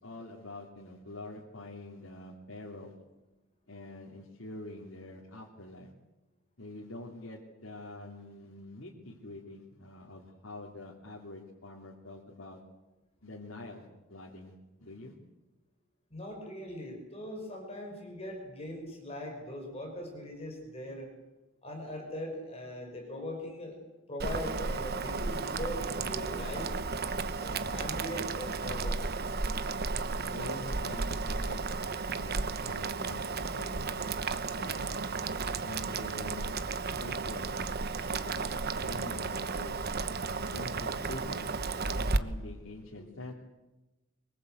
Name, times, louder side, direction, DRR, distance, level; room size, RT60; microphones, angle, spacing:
voice 1, 0.0-3.0 3.7-5.9 6.6-12.6 13.2-14.5 14.8-15.1 30.2-31.6 32.1-34.2 34.5-35.0 35.6-36.5 36.9-37.5 38.1-38.5 38.8-39.9 40.5-43.3, left 2 dB, 80° left, -3 dB, 3.2 m, -45 dB
voice 2, 16.1-21.1 21.6-23.8 24.1-26.7 27.3-29.1, left 1 dB, 30° left, 2 dB, 5.8 m, -40 dB
Boiling, 24.2-42.2, right 4 dB, 50° right, 1.1 m, -33 dB
24.5 x 22.0 x 8.1 m, 1.1 s
head